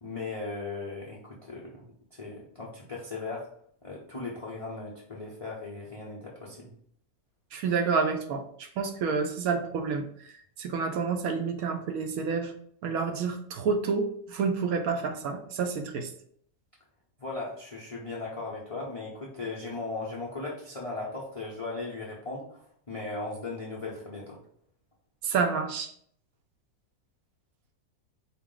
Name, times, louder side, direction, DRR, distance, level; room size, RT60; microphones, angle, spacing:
voice 1, 0.0-1.8 2.1-3.5 3.8-6.7 17.2-24.4, left 3 dB, 45° left, -4 dB, 0.4 m, -37 dB
voice 2, 7.5-10.0 10.6-12.5 12.8-16.1 25.2-25.9, right 5 dB, 70° right, 5 dB, 1.0 m, -29 dB
4.5 x 2.0 x 3.7 m, 0.64 s
omnidirectional pair, 1.6 m